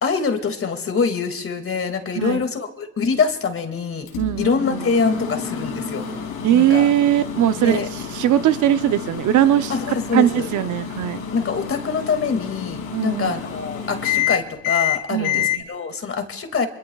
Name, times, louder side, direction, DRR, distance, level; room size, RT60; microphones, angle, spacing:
voice 1, 0.0-4.1 4.4-6.0 6.5-6.9 7.6-7.9 9.7-10.5 11.3-16.7, left 5 dB, 45° left, 6 dB, 2.4 m, -24 dB
Microwave oven, 4.1-15.6, left 9 dB, 85° left, 3.0 m, -28 dB
voice 2, 4.2-4.5 6.4-7.8 8.1-9.7 10.1-11.2 12.9-13.3 15.1-15.4, right 11 dB, 75° right, 12 dB, 0.8 m, -19 dB
25.5 x 23.0 x 2.4 m, 0.89 s
cardioid pair, 90°, 30 cm